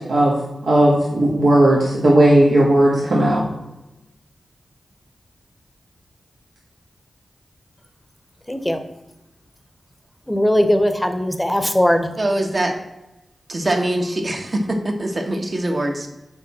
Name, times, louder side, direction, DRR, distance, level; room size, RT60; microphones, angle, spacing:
voice 1, 0.6-3.4, right 1 dB, 80° right, -4 dB, 1.4 m, -15 dB
voice 2, 8.5-8.8 10.3-12.1, left 1 dB, 10° left, 8 dB, 0.8 m, -19 dB
voice 3, 12.2-12.7 13.5-16.1, right 1 dB, 45° right, 3 dB, 1.1 m, -23 dB
6.7 x 4.7 x 4.1 m, 0.96 s
wide cardioid pair, 75°, 0 cm